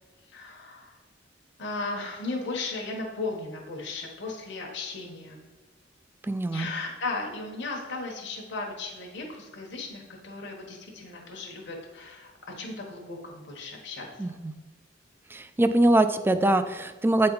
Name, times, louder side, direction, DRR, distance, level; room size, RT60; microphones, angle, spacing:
voice 1, 0.3-1.0 1.6-5.5 6.5-14.1, left 3 dB, 65° left, 0 dB, 1.1 m, -36 dB
voice 2, 6.3-6.7 14.2-14.5 15.3-17.3, right 1 dB, 10° right, 10 dB, 0.3 m, -23 dB
8.4 x 4.3 x 3.9 m, 1.3 s
head